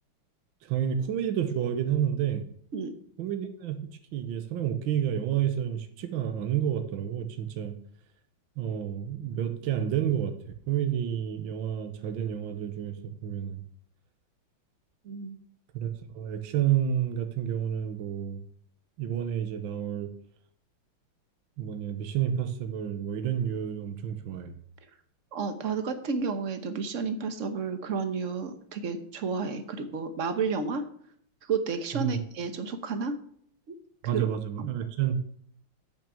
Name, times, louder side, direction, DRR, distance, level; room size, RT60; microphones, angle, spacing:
voice 1, 0.6-2.4 3.2-7.7 8.6-10.3 10.7-13.6 15.7-18.4 19.0-20.1 21.6-24.6 31.9-32.2 34.0-35.2, right 9 dB, 70° right, 7 dB, 1.6 m, -30 dB
voice 2, 15.0-15.4 25.3-30.8 31.5-33.2 33.7-33.8 34.1-34.3, right 5 dB, 50° right, 9 dB, 1.0 m, -31 dB
8.6 x 6.1 x 6.9 m, 0.63 s
omnidirectional pair, 2.3 m